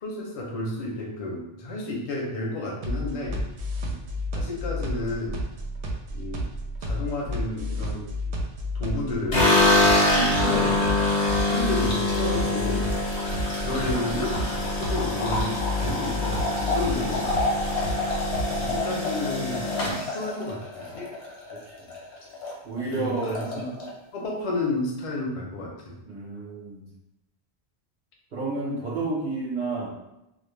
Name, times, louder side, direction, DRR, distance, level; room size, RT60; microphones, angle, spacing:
voice 1, 0.0-3.4 4.3-5.4 6.1-6.4 6.8-8.1 8.7-9.6 10.1-10.8 11.4-12.9 13.6-17.3 18.6-20.9 23.0-23.9 24.1-25.9, left 2 dB, 40° left, -2 dB, 0.5 m, -31 dB
sound 1, 2.8-18.8, equal, 80° right, 0.8 m, -31 dB
sound 2, 9.3-21.6 21.9-22.5 22.8-22.9 23.2-23.9, left 2 dB, 75° left, 1.1 m, -25 dB
voice 2, 21.5-21.9 22.6-23.7 26.0-26.8 28.3-29.9, right 3 dB, 50° right, -5 dB, 0.9 m, -31 dB
2.4 x 2.0 x 3.1 m, 0.88 s
omnidirectional pair, 1.1 m